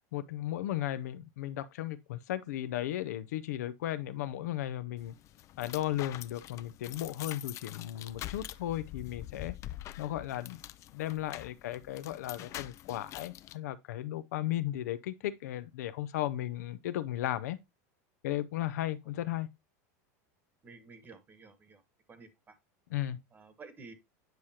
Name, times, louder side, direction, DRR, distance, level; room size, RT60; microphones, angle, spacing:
voice 1, 0.1-5.1 5.6-9.5 10.0-10.6 10.9-17.6 18.2-19.5 22.9-23.2, left 13 dB, 90° left, 0.6 m, -35 dB
sound 1, 5.0-13.6, left 14 dB, 35° left, 0.4 m, -45 dB
voice 2, 20.6-21.8 22.1-22.5 23.3-23.9, right 4 dB, 20° right, 1.2 m, -52 dB
9.2 x 4.9 x 2.8 m
supercardioid pair, 140°, 9 cm